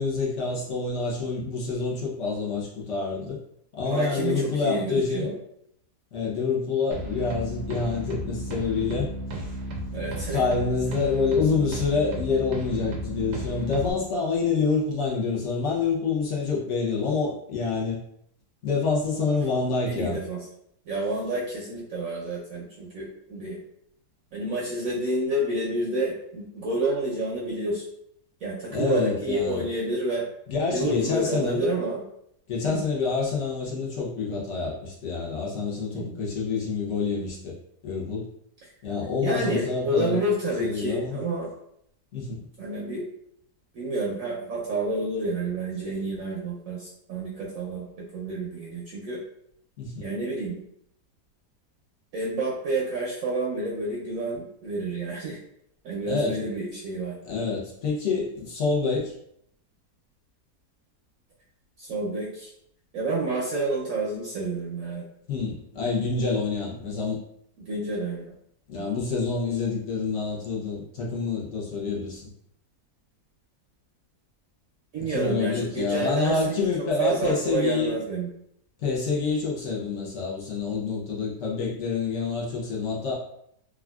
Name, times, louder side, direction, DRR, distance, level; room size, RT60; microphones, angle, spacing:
voice 1, 0.0-3.4 3.7-5.3 6.1-9.1 10.3-18.0 18.6-20.2 28.7-29.7 30.5-31.7 32.5-37.5 37.8-38.3 38.8-40.2 40.6-41.2 42.1-42.5 49.8-50.1 56.0-56.5 57.2-59.1 65.3-67.2 68.7-72.3 75.0-78.0 78.8-83.1, left 4 dB, 60° left, -4 dB, 0.8 m, -27 dB
voice 2, 3.9-5.3 9.9-10.4 19.9-20.4 20.9-23.6 24.3-27.8 28.4-30.2 30.7-32.0 32.6-32.8 35.9-36.2 38.6-38.7 39.2-41.5 42.6-43.0 43.7-49.2 50.0-50.6 52.1-55.4 55.8-57.2 61.8-62.5 62.9-65.1 67.6-68.3 68.7-68.9 74.9-76.5 77.0-78.3, right 2 dB, 65° right, -4 dB, 0.9 m, -29 dB
sound 1, 6.9-13.9, right 1 dB, 85° right, 1.2 m, -34 dB
3.5 x 2.3 x 2.3 m, 0.73 s
omnidirectional pair, 1.8 m